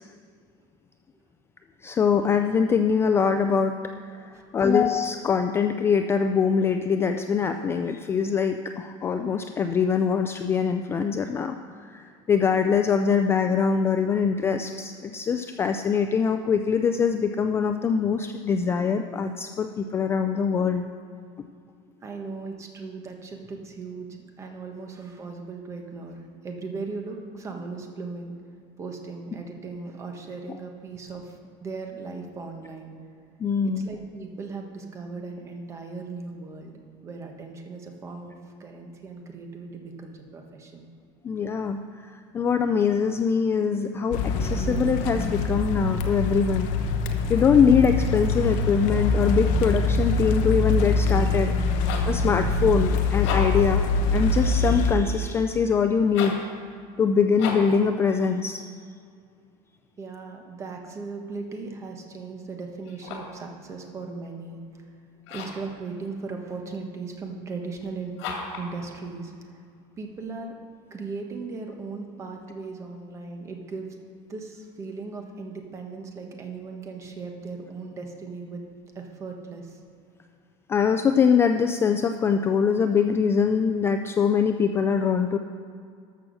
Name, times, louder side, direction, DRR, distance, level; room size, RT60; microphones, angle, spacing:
voice 1, 1.8-3.7 4.5-11.6 11.9-12.0 12.3-20.8 33.4-33.9 41.2-41.8 42.3-46.7 47.3-51.5 52.1-53.8 54.1-56.4 57.0-58.6 80.7-85.4, left 6 dB, 15° left, 7 dB, 0.3 m, -23 dB
voice 2, 4.3-4.7 22.0-24.1 24.4-28.3 28.8-31.3 31.6-32.9 33.8-38.3 38.6-40.9 60.0-64.6 65.3-68.1 68.6-69.3 70.0-70.5 70.9-73.9 74.3-78.6 78.9-79.8, right 4 dB, 20° right, 3 dB, 1.2 m, -37 dB
sound 1, 44.1-54.9, left 3 dB, 60° left, 0.9 m, -24 dB
sound 2, 51.9-52.2 53.1-53.7 56.1-56.5 57.4-57.8 62.8-63.4 65.2-65.7 68.2-68.7, left 5 dB, 85° left, 2.4 m, -33 dB
13.0 x 6.1 x 6.4 m, 2.3 s
cardioid pair, 165°, 14 cm